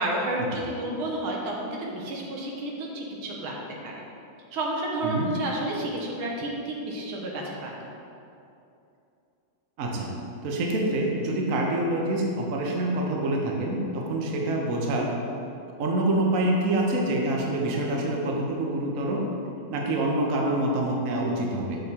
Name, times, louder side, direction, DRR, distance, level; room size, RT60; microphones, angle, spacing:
voice 1, 0.0-3.6 3.8-3.9 4.5-7.7, right 1 dB, 80° right, -1 dB, 1.8 m, -31 dB
voice 2, 9.8-10.1 10.4-15.1 15.8-19.2 19.7-21.8, right 1 dB, 60° right, -1 dB, 0.9 m, -26 dB
6.6 x 6.4 x 2.9 m, 2.6 s
omnidirectional pair, 2.3 m